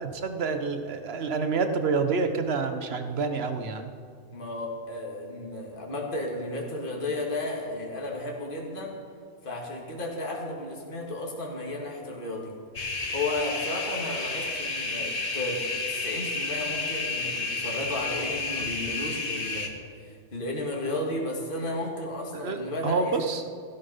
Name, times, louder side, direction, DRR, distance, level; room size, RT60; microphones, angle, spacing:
voice 1, 0.0-3.9 22.3-23.4, right 4 dB, 60° right, 7 dB, 1.3 m, -28 dB
voice 2, 4.3-9.0 9.4-12.5 13.1-19.7 20.0-23.2, left 2 dB, 45° left, -1 dB, 2.1 m, -33 dB
sound 1, 12.8-19.7, left 3 dB, 70° left, 1.7 m, -31 dB
16.0 x 12.0 x 5.6 m, 2.2 s
omnidirectional pair, 1.2 m